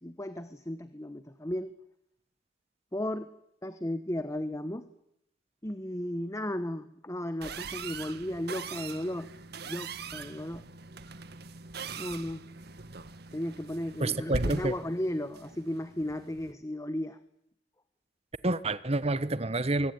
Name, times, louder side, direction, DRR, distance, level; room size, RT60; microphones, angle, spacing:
voice 1, 0.0-1.7 2.9-3.3 3.6-4.9 5.6-9.3 9.6-10.6 12.0-12.4 13.3-17.2, left 1 dB, 15° left, 1.1 m, -35 dB
sound 1, 7.4-16.5, right 3 dB, 60° right, 1.7 m, -41 dB
voice 2, 14.0-14.7 18.4-19.9, right 2 dB, 35° right, 1.2 m, -28 dB
24.5 x 24.0 x 9.7 m
head